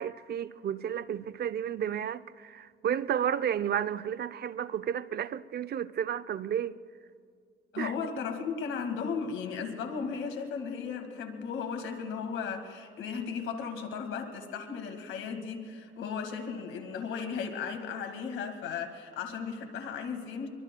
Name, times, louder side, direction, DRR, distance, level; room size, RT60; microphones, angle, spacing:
voice 1, 0.0-6.8 7.8-7.9, right 9 dB, 55° right, 0.5 m, -32 dB
voice 2, 7.7-20.5, left 6 dB, 80° left, 2.0 m, -36 dB
23.5 x 23.5 x 2.2 m
cardioid pair, 90°, 20 cm